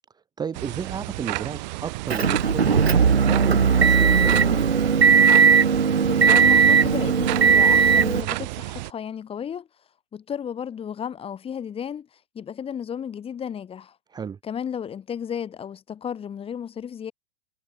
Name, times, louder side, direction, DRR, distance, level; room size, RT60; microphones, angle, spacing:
voice 1, 0.4-4.6 14.1-14.4, right 6 dB, 15° right, 1.3 m, -33 dB
sound 1, 0.5-8.9, right 21 dB, 45° right, 3.8 m, -32 dB
Motor vehicle (road) / Engine, 2.1-8.2, right 6 dB, 80° right, 1.2 m, -17 dB
voice 2, 6.1-9.7 10.1-12.1 12.3-13.9 14.4-17.1, left 8 dB, 20° left, 2.8 m, -33 dB
figure-of-eight pair, 105°, 31 cm